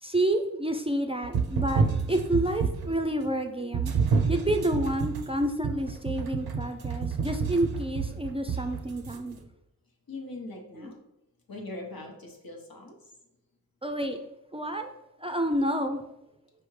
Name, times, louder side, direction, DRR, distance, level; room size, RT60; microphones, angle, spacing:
voice 1, 0.0-3.9 4.3-9.4 10.8-10.9 13.8-14.2 14.5-14.9 15.2-16.0, right 1 dB, 15° right, 6 dB, 0.4 m, -29 dB
sound 1, 1.2-3.0 3.7-9.2, right 5 dB, 90° right, 0.5 m, -29 dB
voice 2, 10.1-11.0 11.5-13.1, left 2 dB, 75° left, 1 dB, 1.0 m, -41 dB
4.9 x 3.4 x 3.2 m, 0.89 s
wide cardioid pair, 55°, 36 cm